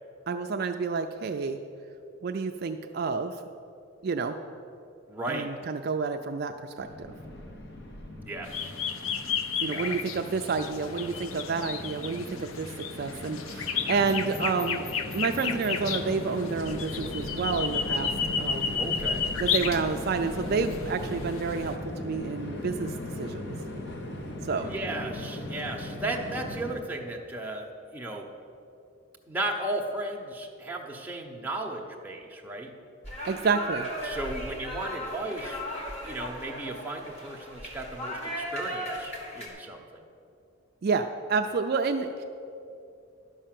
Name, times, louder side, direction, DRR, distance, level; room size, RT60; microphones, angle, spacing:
voice 1, 0.3-1.6 2.2-3.4 4.0-4.4 5.3-7.1 9.6-14.8 15.1-18.7 19.4-22.9 23.2-23.5 24.4-24.7 33.3-33.9 40.8-42.2, right 4 dB, 50° right, 5 dB, 0.4 m, -29 dB
voice 2, 5.1-5.5 8.2-8.7 9.6-10.0 18.8-19.3 24.6-28.3 29.3-32.7 34.0-35.6 36.0-40.0, right 2 dB, 10° right, 0 dB, 0.8 m, -35 dB
Train, 6.8-26.7, left 1 dB, 55° left, 1.0 m, -38 dB
sound 1, 8.4-21.8, left 6 dB, 80° left, 0.6 m, -33 dB
sound 2, 33.0-39.5, equal, 30° left, 1.6 m, -36 dB
11.5 x 5.5 x 7.5 m, 2.6 s
head